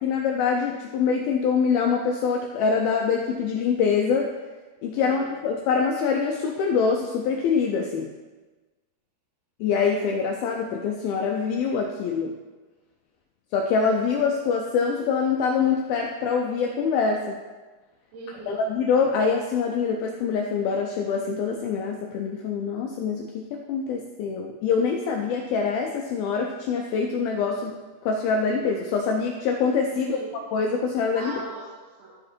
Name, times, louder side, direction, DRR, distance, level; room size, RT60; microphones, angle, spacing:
voice 1, 0.0-4.3 4.8-8.1 9.6-12.4 13.5-17.4 18.5-27.7 28.0-30.2 30.5-31.3, left 5 dB, 85° left, 2 dB, 2.1 m, -24 dB
voice 2, 4.9-5.3 18.1-18.7 29.9-30.3 31.2-32.1, right 3 dB, 75° right, -5 dB, 3.0 m, -39 dB
12.5 x 4.8 x 4.4 m, 1.3 s
omnidirectional pair, 4.9 m